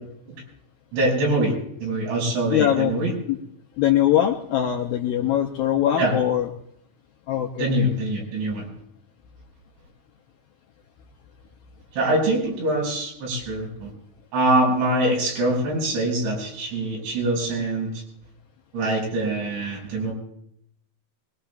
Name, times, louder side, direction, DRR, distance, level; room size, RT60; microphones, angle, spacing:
voice 1, 0.9-1.5 1.8-3.1 6.0-6.2 7.6-8.7 11.9-13.9 14.3-18.0 18.7-20.1, right 1 dB, 90° right, -2 dB, 7.8 m, -24 dB
voice 2, 2.5-2.9 3.3-3.4 3.8-6.5 7.3-7.7, left 11 dB, 80° left, 1 dB, 2.1 m, -22 dB
24.0 x 21.5 x 2.3 m, 0.72 s
omnidirectional pair, 5.1 m